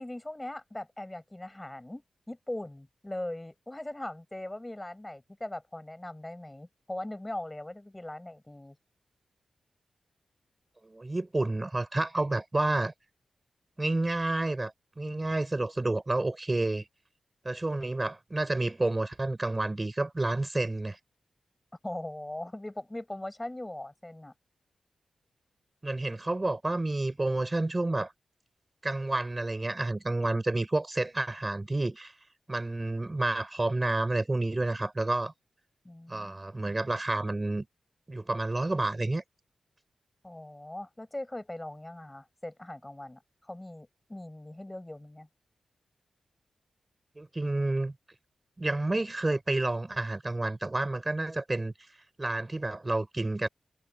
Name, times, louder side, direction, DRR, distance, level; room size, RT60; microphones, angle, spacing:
voice 1, 0.0-8.8 21.8-24.3 35.8-36.7 40.2-45.3, left 1 dB, 15° left, 7.8 m, -40 dB
voice 2, 10.8-12.9 13.8-16.9 17.4-21.0 25.8-28.1 28.8-32.1 32.5-35.3 36.1-37.7 38.1-39.2 47.2-47.9 48.6-51.7 52.2-53.5, right 2 dB, 20° right, 5.9 m, -30 dB
wide cardioid pair, 100°, 0 cm